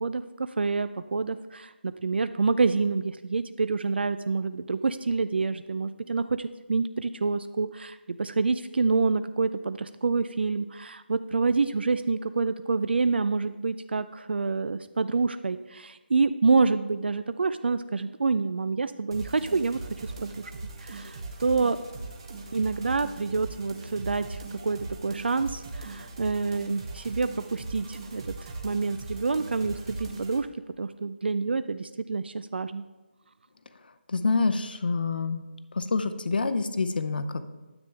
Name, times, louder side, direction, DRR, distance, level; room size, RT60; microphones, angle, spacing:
voice 1, 0.0-20.5 20.8-21.8 22.5-30.5 30.8-32.8, right 4 dB, 65° right, 12 dB, 0.4 m, -27 dB
sound 1, 19.1-30.4, right 3 dB, 25° right, 0.8 m, -40 dB
voice 2, 34.1-35.4 35.7-37.4, left 4 dB, 55° left, 10 dB, 0.7 m, -27 dB
9.6 x 8.5 x 3.4 m, 1.2 s
figure-of-eight pair, 175°, 6 cm